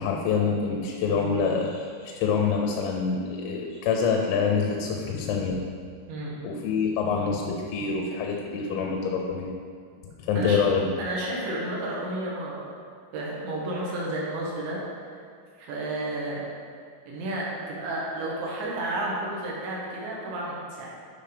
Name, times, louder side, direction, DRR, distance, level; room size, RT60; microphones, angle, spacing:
voice 1, 0.0-5.6 6.4-9.5 10.1-10.9, left 5 dB, 90° left, 1 dB, 3.4 m, -26 dB
voice 2, 6.1-6.4 10.4-10.6 11.0-12.7 13.1-14.8 15.1-15.2 15.6-16.4 17.1-20.9, right 1 dB, 70° right, -4 dB, 3.6 m, -31 dB
9.1 x 5.1 x 5.1 m, 2.2 s
omnidirectional pair, 5.8 m